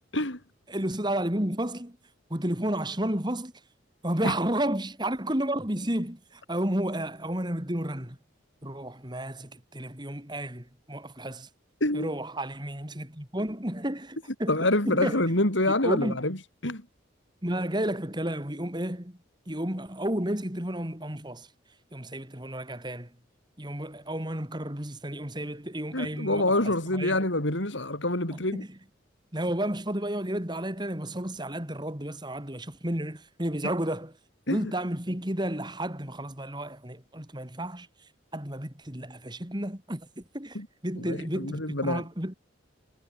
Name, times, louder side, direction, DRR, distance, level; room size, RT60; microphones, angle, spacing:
voice 1, 0.7-2.0 2.3-3.5 4.0-8.2 8.6-11.5 11.9-15.2 15.8-16.2 17.4-19.2 19.5-21.5 21.9-23.1 23.6-26.5 26.9-27.2 28.3-28.7 29.3-34.1 34.5-37.9 38.3-40.6 40.8-42.3, right 1 dB, 20° right, 3.2 m, -32 dB
voice 2, 14.5-16.4 16.6-16.8 25.9-28.6 34.5-34.7 40.5-40.7 41.0-42.0, left 1 dB, 70° left, 5.1 m, -26 dB
head